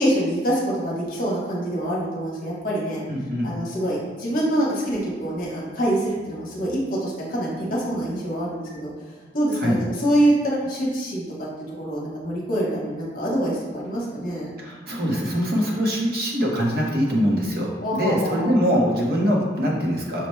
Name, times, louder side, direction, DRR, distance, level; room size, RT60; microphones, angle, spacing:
voice 1, 0.0-3.0 3.4-8.9 9.3-14.6 17.8-18.5, right 1 dB, 50° left, -5 dB, 0.9 m, -25 dB
voice 2, 3.1-3.5 9.5-9.8 14.6-20.3, equal, 55° right, -2 dB, 0.8 m, -23 dB
5.7 x 2.1 x 3.1 m, 1.4 s
head